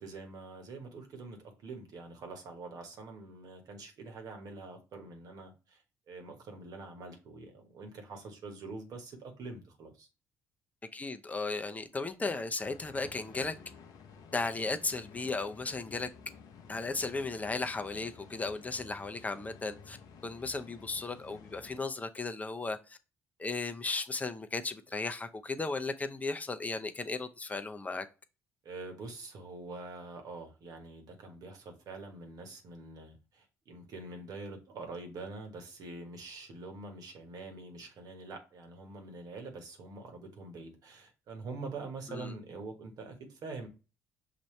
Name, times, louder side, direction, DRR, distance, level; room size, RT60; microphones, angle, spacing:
voice 1, 0.0-10.1 28.6-43.7, right 3 dB, 60° right, 1.4 m, -45 dB
voice 2, 10.9-13.5 14.3-16.1 16.7-20.0 20.2-23.0 23.4-28.1 42.1-42.3, left 3 dB, 20° left, 0.6 m, -35 dB
sound 1, 12.6-21.8, left 5 dB, 65° left, 0.7 m, -53 dB
6.0 x 2.7 x 3.2 m
hypercardioid pair, 55°, 7 cm